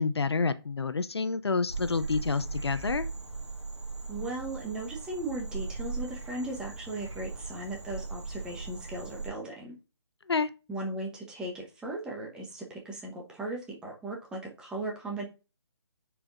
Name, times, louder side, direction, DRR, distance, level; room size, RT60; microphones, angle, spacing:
voice 1, 0.0-3.1 10.3-10.5, left 4 dB, 65° left, 0.6 m, -28 dB
Frog, 1.7-9.3, right 4 dB, 80° right, 1.6 m, -39 dB
voice 2, 4.1-9.8 10.7-15.2, right 2 dB, 5° right, 1.1 m, -37 dB
9.2 x 4.7 x 2.5 m
figure-of-eight pair, 145°, 14 cm